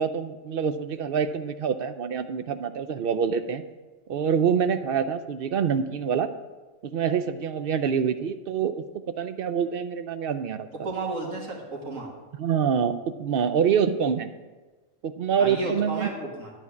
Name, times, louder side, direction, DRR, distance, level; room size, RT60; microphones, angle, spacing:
voice 1, 0.0-3.6 4.1-6.3 6.8-8.8 9.2-10.7 12.4-14.3 15.0-16.1, right 7 dB, 60° right, 11 dB, 0.6 m, -26 dB
voice 2, 10.8-12.1 15.4-16.5, right 2 dB, 85° right, -1 dB, 2.4 m, -32 dB
12.0 x 4.5 x 8.3 m, 1.2 s
omnidirectional pair, 1.4 m